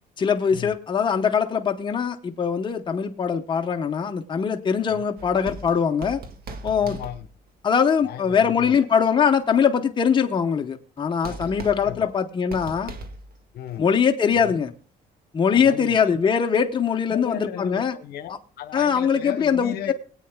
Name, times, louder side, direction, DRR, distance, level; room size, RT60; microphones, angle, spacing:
voice 1, 0.2-6.2 6.6-7.0 7.6-12.9 13.8-14.7 15.3-17.9 18.7-19.9, left 7 dB, 30° left, 0.9 m, -22 dB
sound 1, 5.2-7.7 11.0-11.1 11.2-13.4 13.7-13.8, right 2 dB, 60° right, 1.9 m, -39 dB
voice 2, 6.8-7.3 8.0-8.9 11.3-12.1 13.5-13.9 14.3-14.6 15.5-16.0 17.1-19.9, left 10 dB, 70° left, 1.1 m, -36 dB
22.0 x 8.8 x 2.2 m
cardioid pair, 110°, 17 cm